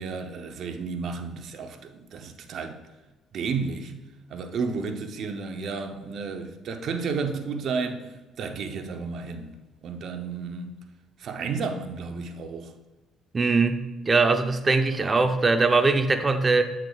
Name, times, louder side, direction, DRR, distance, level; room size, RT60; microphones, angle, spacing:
voice 1, 0.0-2.8 3.3-3.9 4.3-9.5 9.8-10.8 11.2-12.7, right 5 dB, 60° right, 0.8 m, -32 dB
voice 2, 13.3-13.8 14.1-16.6, right 3 dB, 30° right, 0.7 m, -21 dB
7.8 x 7.6 x 2.4 m
supercardioid pair, 75°, 0 cm